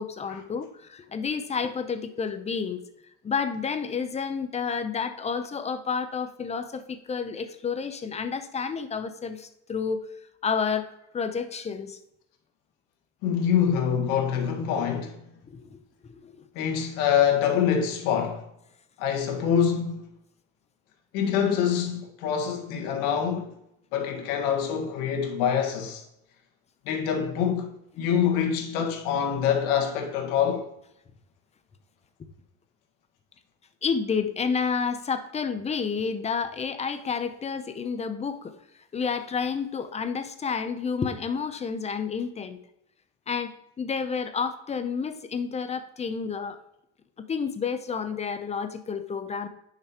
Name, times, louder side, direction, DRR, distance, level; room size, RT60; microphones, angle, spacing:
voice 1, 0.0-2.8 3.2-10.1 10.4-12.0 15.5-16.5 33.8-38.5 38.9-42.6 43.3-46.6 47.2-49.5, left 5 dB, 20° left, 0.6 m, -30 dB
voice 2, 13.2-15.2 16.6-18.5 19.0-20.1 21.1-23.5 23.9-26.0 26.9-30.7, left 8 dB, 75° left, 1.7 m, -25 dB
10.0 x 5.9 x 3.0 m
cardioid pair, 130°, 32 cm